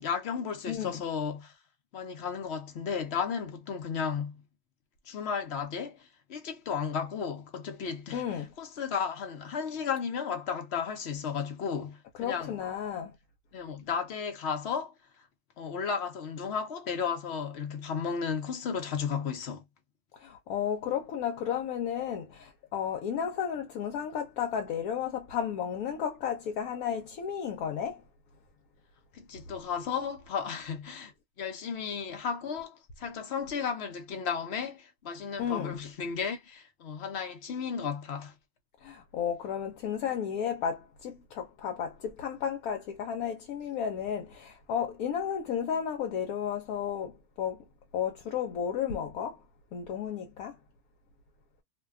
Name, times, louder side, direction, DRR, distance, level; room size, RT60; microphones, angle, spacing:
voice 1, 0.0-1.6 1.9-4.4 5.1-12.6 13.5-14.9 15.6-19.6 29.1-31.1 31.4-38.3, left 6 dB, 60° left, 0.7 m, -34 dB
voice 2, 0.7-1.0 8.1-8.5 12.2-13.1 20.1-28.0 35.4-35.8 38.8-47.6 47.9-49.4 49.7-50.6, left 8 dB, 80° left, 1.1 m, -33 dB
2.7 x 2.2 x 2.2 m
omnidirectional pair, 1.6 m